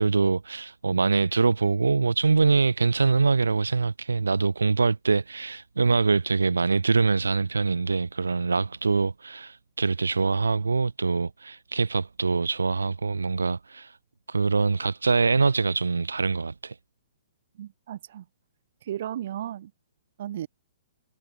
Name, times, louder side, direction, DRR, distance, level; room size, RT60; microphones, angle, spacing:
voice 1, 0.0-14.0 14.3-16.7, right 4 dB, 90° right, 1.3 m, -24 dB
voice 2, 17.6-18.3 18.8-19.7 20.2-20.5, right 11 dB, 60° right, 5.9 m, -34 dB
hypercardioid pair, 125°, 0 cm